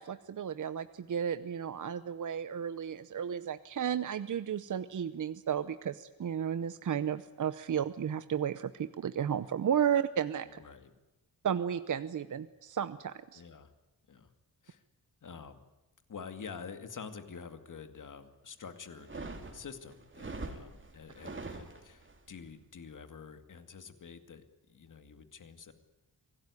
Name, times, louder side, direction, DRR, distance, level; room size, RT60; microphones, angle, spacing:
voice 1, 0.0-10.6 11.4-13.4, right 8 dB, 55° right, 13 dB, 0.8 m, -33 dB
voice 2, 10.5-10.9 13.3-13.7 14.1-14.3 14.6-14.8 15.2-15.6 16.1-19.3 19.5-24.4 24.7-25.7, left 6 dB, 55° left, 8 dB, 2.3 m, -47 dB
sound 1, 18.9-22.2, right 3 dB, 30° right, 3.0 m, -43 dB
25.5 x 18.0 x 9.8 m, 1.0 s
wide cardioid pair, 155°, 38 cm